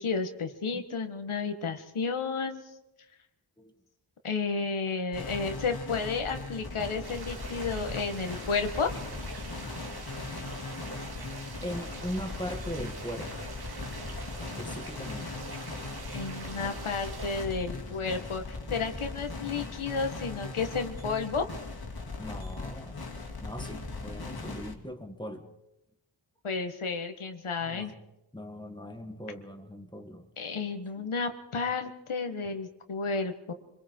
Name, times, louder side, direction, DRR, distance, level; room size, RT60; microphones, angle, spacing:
voice 1, 0.0-2.6 4.2-8.9 16.1-18.4 18.7-21.5 26.4-27.9 30.4-33.5, left 4 dB, 80° left, 6 dB, 1.7 m, -32 dB
sound 1, 5.1-24.7, left 3 dB, 50° left, 2.6 m, -39 dB
sound 2, 7.0-17.5, right 3 dB, 50° right, 2.3 m, -44 dB
voice 2, 11.6-13.5 14.4-15.4 22.2-23.0 23.4-25.5 27.6-28.0 28.3-30.3 31.0-31.1, equal, 10° left, 5 dB, 1.8 m, -40 dB
26.0 x 22.0 x 4.6 m, 0.89 s
wide cardioid pair, 105°, 49 cm